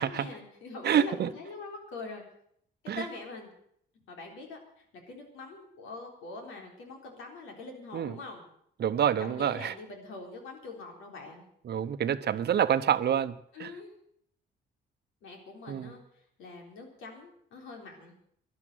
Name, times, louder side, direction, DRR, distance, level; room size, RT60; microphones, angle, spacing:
voice 1, 0.0-2.2 3.0-3.5 4.1-8.4 9.2-11.4 13.5-13.9 15.2-16.0 16.4-18.1, left 3 dB, 90° left, 2 dB, 3.9 m, -43 dB
voice 2, 0.8-1.3 2.9-3.0 7.9-8.1 8.8-9.7 11.6-13.3 13.6-13.7 15.7-16.0, right 9 dB, 55° right, 12 dB, 0.9 m, -27 dB
12.5 x 11.5 x 7.9 m, 0.68 s
cardioid pair, 90°, 20 cm